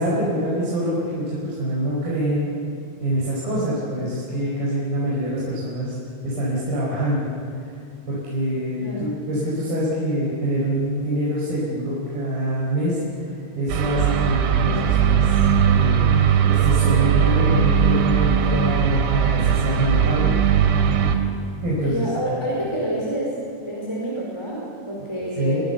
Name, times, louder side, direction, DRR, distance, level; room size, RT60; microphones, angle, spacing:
voice 1, 0.0-2.5 3.0-6.0 6.2-7.3 7.7-7.8 8.1-15.4 15.6-16.2 16.5-20.4 21.6-22.1 25.4-25.6, right 1 dB, 55° right, -6 dB, 6.6 m, -25 dB
voice 2, 8.8-9.1 21.8-23.3 23.6-25.6, right 1 dB, 5° left, -4 dB, 4.2 m, -28 dB
sound 1, 13.7-21.2, right 8 dB, 90° right, 4.1 m, -19 dB
28.5 x 22.5 x 7.1 m, 2.6 s
omnidirectional pair, 5.2 m